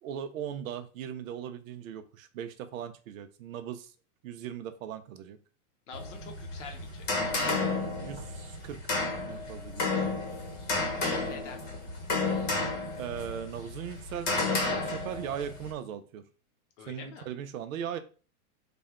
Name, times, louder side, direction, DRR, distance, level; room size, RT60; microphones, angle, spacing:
voice 1, 0.0-3.9 4.2-5.4 8.0-9.0 9.2-10.1 13.0-16.2 16.9-18.0, right 9 dB, 65° right, 0.7 m, -39 dB
voice 2, 5.9-7.1 11.0-11.6 16.8-17.3, left 5 dB, 55° left, 0.8 m, -45 dB
sound 1, 5.9-15.7, left 3 dB, 30° left, 0.9 m, -32 dB
3.4 x 2.2 x 3.5 m
supercardioid pair, 145°, 45 cm